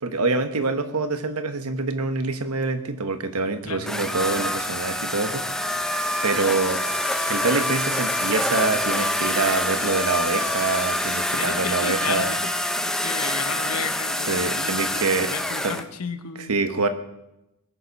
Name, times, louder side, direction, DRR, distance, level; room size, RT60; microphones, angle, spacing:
voice 1, 0.0-5.4 6.2-6.8 7.3-12.3 14.3-15.3 15.6-15.7 16.5-16.9, right 3 dB, 90° right, 8 dB, 1.2 m, -25 dB
voice 2, 3.6-3.9 11.4-12.5 12.8-16.6, left 6 dB, 85° left, 10 dB, 1.0 m, -33 dB
Bass guitar, 3.6-8.1 8.5-9.9, right 1 dB, 25° right, 1.1 m, -50 dB
sound 1, 3.9-15.8, left 1 dB, ahead, 0.5 m, -26 dB
sound 2, 5.3-12.0, left 8 dB, 65° left, 1.5 m, -42 dB
20.5 x 7.1 x 5.3 m, 0.90 s
head